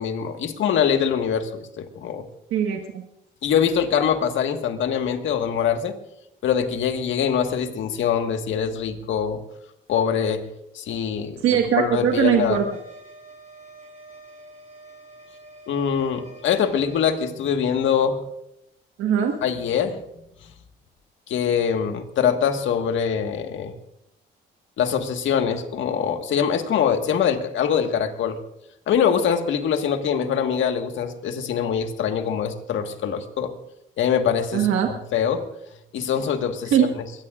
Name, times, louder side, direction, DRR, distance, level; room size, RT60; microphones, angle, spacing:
voice 1, 0.0-2.2 3.4-6.0 6.4-9.4 9.9-10.5 10.8-11.4 11.8-12.6 15.7-18.3 19.4-20.0 21.3-23.7 24.8-28.4 28.9-33.5 34.0-35.5 35.9-37.0, left 8 dB, 75° left, 6 dB, 1.7 m, -23 dB
voice 2, 2.5-3.0 11.4-12.6 19.0-19.3 34.5-34.9 36.7-36.9, right 9 dB, 85° right, 2 dB, 1.5 m, -20 dB
sound 1, 12.0-17.1, right 2 dB, 35° right, 6.2 m, -46 dB
23.0 x 18.5 x 2.5 m, 0.81 s
cardioid pair, 90°, 20 cm